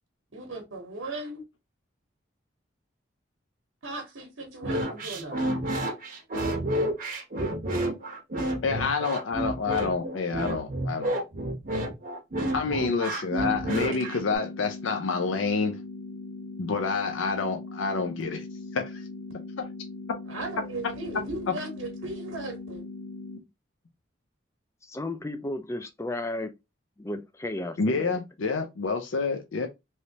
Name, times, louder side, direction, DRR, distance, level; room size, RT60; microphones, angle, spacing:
voice 1, 0.3-1.4 3.8-5.4 20.3-22.9, right 2 dB, 80° right, 0.9 m, -37 dB
sound 1, 4.6-14.4, right 1 dB, 45° right, 0.7 m, -30 dB
voice 2, 8.6-11.2 12.5-15.8 16.6-18.4 18.7-19.0 19.6-19.7 27.8-29.7, left 4 dB, 80° left, 0.5 m, -28 dB
sound 2, 13.4-23.4, left 3 dB, 50° left, 0.8 m, -40 dB
voice 3, 24.8-26.6 27.0-28.2, left 1 dB, 15° left, 0.3 m, -34 dB
3.2 x 3.0 x 2.7 m
head